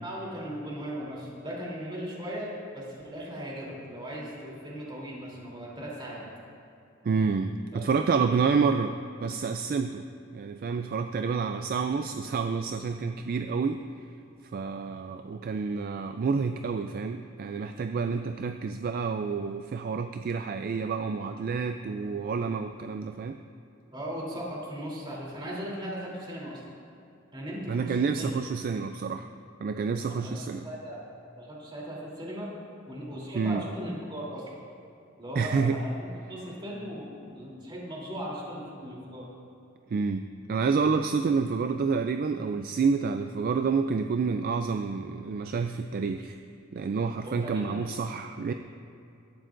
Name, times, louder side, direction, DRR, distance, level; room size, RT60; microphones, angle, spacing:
voice 1, 0.0-6.2 7.7-7.9 8.1-8.4 23.9-26.6 27.3-28.4 30.0-31.0 31.4-32.5 32.9-34.4 35.2-39.3 47.2-47.9, equal, 25° right, -5 dB, 3.1 m, -38 dB
voice 2, 7.0-10.1 10.3-13.9 14.5-23.4 27.7-29.3 29.6-30.7 33.3-33.6 35.4-35.8 39.9-46.4 46.7-48.5, right 5 dB, 45° right, 8 dB, 0.3 m, -28 dB
16.5 x 12.5 x 2.6 m, 2.7 s
head